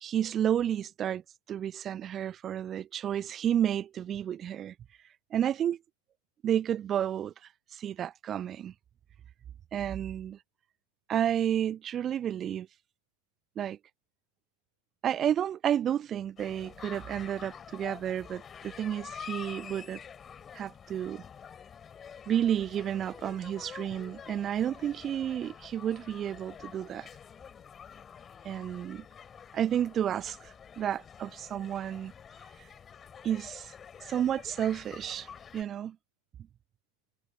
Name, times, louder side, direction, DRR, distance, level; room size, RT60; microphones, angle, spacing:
voice 1, 0.0-1.2 1.5-4.7 5.3-5.8 6.4-7.3 7.7-8.7 9.7-10.4 11.1-12.7 13.6-13.8 15.0-20.0 20.5-21.2 22.3-27.1 28.4-29.1 29.5-32.1 33.2-33.7 34.0-36.0, right 10 dB, 25° right, 0.5 m, -31 dB
sound 1, 16.4-35.6, left 7 dB, 20° left, 4.3 m, -48 dB
figure-of-eight pair, 90°, 0 cm